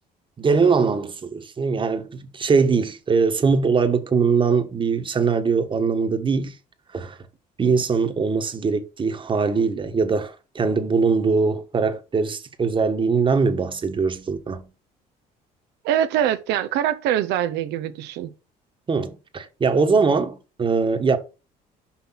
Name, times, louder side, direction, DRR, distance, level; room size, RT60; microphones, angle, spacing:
voice 1, 0.4-6.5 6.9-7.2 7.6-14.7 18.9-21.2, right 5 dB, 30° right, 1.3 m, -21 dB
voice 2, 15.8-18.3, right 11 dB, 90° right, 0.7 m, -23 dB
5.9 x 5.6 x 5.8 m
cardioid pair, 110°, 17 cm